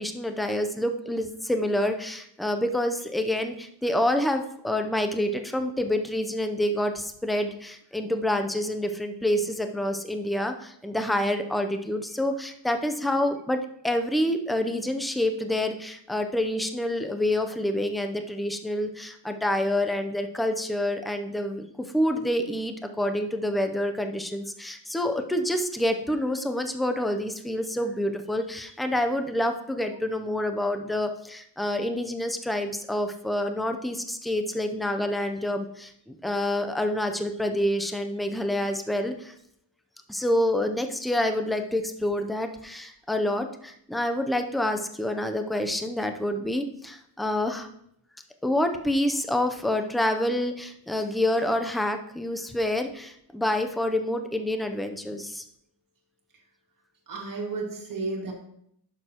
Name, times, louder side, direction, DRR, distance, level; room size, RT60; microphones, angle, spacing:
voice 1, 0.0-21.7 21.9-39.3 40.1-47.7 48.4-55.4, left 1 dB, ahead, 6 dB, 0.6 m, -27 dB
voice 2, 57.1-58.3, right 3 dB, 50° right, 0 dB, 2.0 m, -32 dB
10.5 x 6.8 x 2.9 m, 0.70 s
wide cardioid pair, 130°, 43 cm